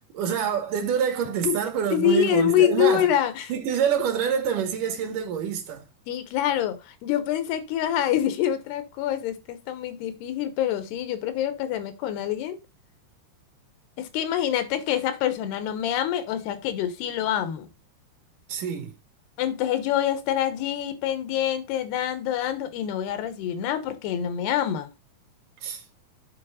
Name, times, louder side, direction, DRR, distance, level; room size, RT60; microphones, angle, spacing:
voice 1, 0.1-3.1 3.5-5.8 18.5-18.9 25.6-25.8, right 8 dB, 60° right, 3.3 m, -26 dB
voice 2, 1.9-3.5 6.1-12.6 14.0-17.7 19.4-24.9, left 10 dB, 90° left, 3.3 m, -26 dB
8.5 x 5.0 x 5.0 m
omnidirectional pair, 4.5 m